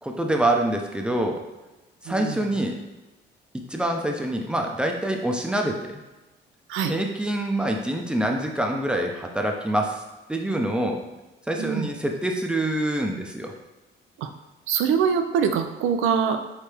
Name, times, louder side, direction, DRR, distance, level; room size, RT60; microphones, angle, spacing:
voice 1, 0.0-1.4 2.0-2.8 3.5-6.0 6.9-10.0 10.3-11.0 11.5-13.5, right 1 dB, 5° right, 2 dB, 0.7 m, -25 dB
voice 2, 2.1-2.4 6.7-6.9 11.6-11.9 14.2-14.3 14.7-16.4, right 7 dB, 90° right, 8 dB, 0.5 m, -24 dB
4.7 x 3.3 x 3.3 m, 1.1 s
cardioid pair, 90°, 20 cm